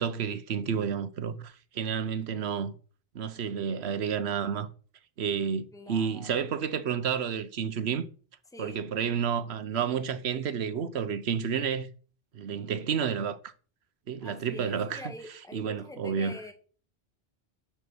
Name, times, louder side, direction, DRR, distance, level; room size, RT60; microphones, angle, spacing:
voice 1, 0.0-2.7 3.1-4.7 5.2-8.1 8.6-11.9 12.3-13.4 14.1-15.1 15.5-16.5, right 7 dB, 80° right, 1.1 m, -30 dB
voice 2, 5.7-6.4 8.5-9.1 14.2-16.5, left 2 dB, 5° left, 1.4 m, -45 dB
6.5 x 6.2 x 7.0 m
omnidirectional pair, 1.1 m